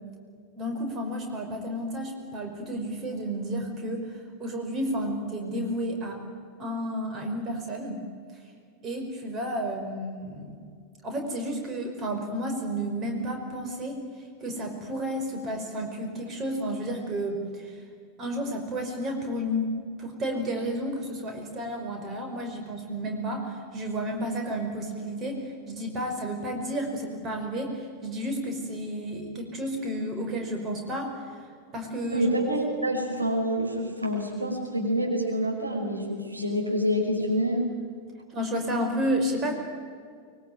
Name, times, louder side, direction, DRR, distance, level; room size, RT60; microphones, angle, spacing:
voice 1, 0.6-4.1 4.4-6.2 6.6-8.0 8.8-10.5 11.0-14.0 14.4-17.8 18.2-19.7 20.0-31.2 31.7-32.3 38.3-39.5, equal, 30° right, 4 dB, 5.2 m, -31 dB
voice 2, 32.1-37.7, equal, 85° right, 1 dB, 5.4 m, -27 dB
24.0 x 23.0 x 9.3 m, 2.1 s
figure-of-eight pair, 90°, 0 cm